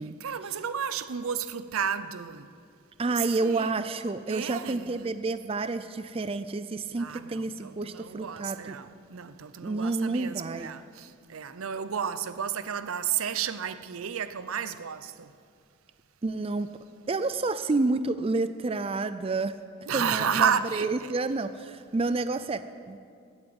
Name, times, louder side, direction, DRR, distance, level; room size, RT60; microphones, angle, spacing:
voice 1, 0.2-2.5 3.0-3.8 4.3-5.1 7.0-15.3 19.9-21.1, right 7 dB, 85° right, 0.6 m, -32 dB
voice 2, 3.0-8.8 9.6-10.7 16.2-16.7 17.1-19.6 19.9-23.0, right 3 dB, 25° right, 0.4 m, -29 dB
16.0 x 8.9 x 7.8 m
head